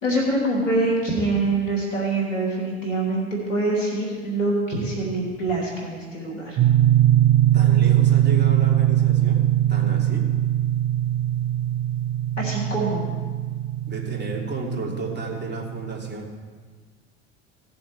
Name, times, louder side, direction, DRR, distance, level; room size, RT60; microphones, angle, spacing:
voice 1, 0.0-6.6 12.4-13.0, right 2 dB, 90° left, -2 dB, 3.1 m, -24 dB
sound 1, 6.6-16.1, right 12 dB, 50° right, 0.9 m, -21 dB
voice 2, 7.5-10.3 13.9-16.3, right 2 dB, 30° right, -1 dB, 3.0 m, -32 dB
17.5 x 7.0 x 4.8 m, 1.5 s
hypercardioid pair, 75°, 37 cm